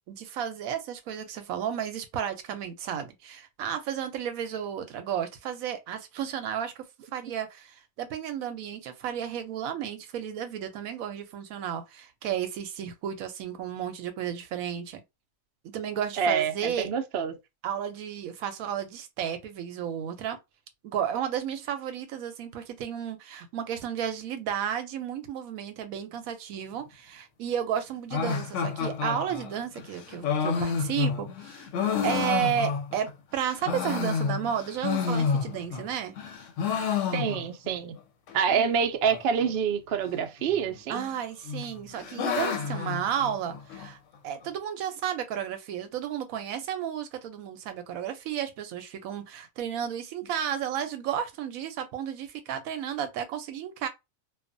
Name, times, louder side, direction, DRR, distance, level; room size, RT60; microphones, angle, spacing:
voice 1, 0.1-6.8 7.1-15.0 15.6-16.9 17.6-20.4 20.8-31.7 32.0-36.2 38.5-38.7 40.9-44.0 44.2-53.9, right 9 dB, 80° right, 1.0 m, -33 dB
voice 2, 16.2-17.4 37.1-37.9 38.3-41.0, right 7 dB, 65° right, 0.6 m, -27 dB
sound 1, 28.1-33.1 33.5-35.9 36.2-37.7 38.0-38.1 38.3-38.4 39.0-39.5 40.5-41.1 41.5-43.9, left 6 dB, 70° left, 0.9 m, -30 dB
2.4 x 2.3 x 2.5 m
omnidirectional pair, 1.4 m